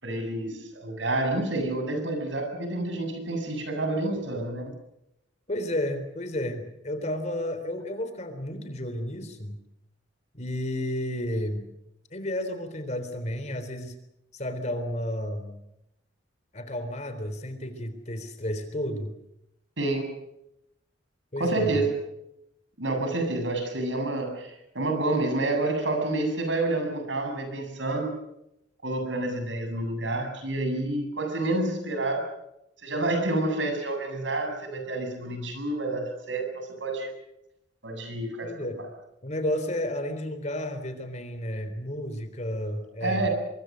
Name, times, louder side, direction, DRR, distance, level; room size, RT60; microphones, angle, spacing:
voice 1, 0.0-4.7 19.8-20.2 21.4-21.9 22.8-28.1 28.8-32.3 32.8-37.1 37.8-38.9 43.0-43.3, right 2 dB, 80° right, 5 dB, 7.8 m, -29 dB
voice 2, 5.5-9.6 10.3-11.6 12.1-13.9 14.3-15.6 16.5-19.1 21.3-21.8 38.4-38.8 39.2-43.3, left 1 dB, 40° left, 9 dB, 3.8 m, -32 dB
24.5 x 23.5 x 6.5 m, 0.83 s
head